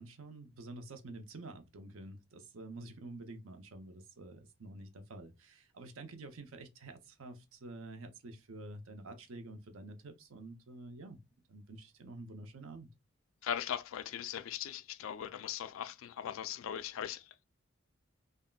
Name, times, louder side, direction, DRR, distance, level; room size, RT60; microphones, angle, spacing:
voice 1, 0.0-11.2 11.5-12.9, right 2 dB, 90° right, 0.7 m, -49 dB
voice 2, 13.4-17.4, left 9 dB, 80° left, 0.3 m, -39 dB
3.5 x 2.1 x 2.2 m
head